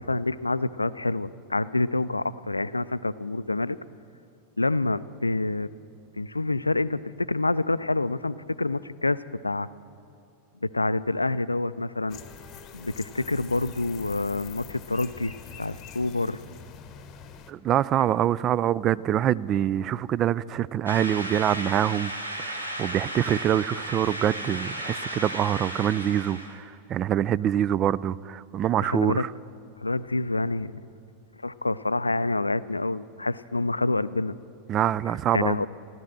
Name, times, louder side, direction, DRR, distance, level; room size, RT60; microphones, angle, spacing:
voice 1, 0.0-3.8 4.6-5.7 6.2-9.7 10.6-12.2 12.7-16.4 28.8-29.2 29.8-30.8 31.4-34.3 35.3-35.7, left 2 dB, 80° left, 16 dB, 0.4 m, -27 dB
sound 1, 12.1-17.5, left 7 dB, 30° left, 1.0 m, -44 dB
voice 2, 17.5-22.1 22.4-29.3 34.7-35.7, right 10 dB, 30° right, 19 dB, 0.3 m, -25 dB
sound 2, 20.9-26.6, right 1 dB, 85° right, 1.6 m, -34 dB
15.0 x 12.5 x 7.7 m, 2.7 s
figure-of-eight pair, 90°, 0 cm